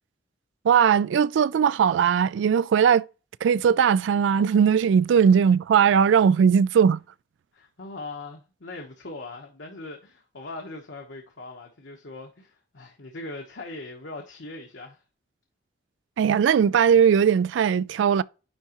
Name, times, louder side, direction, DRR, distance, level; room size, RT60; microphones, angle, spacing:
voice 1, 0.6-3.0 3.4-7.0 16.2-18.2, right 7 dB, 90° right, 0.3 m, -19 dB
voice 2, 7.5-15.0, left 2 dB, 80° left, 1.0 m, -40 dB
10.0 x 3.5 x 2.9 m
head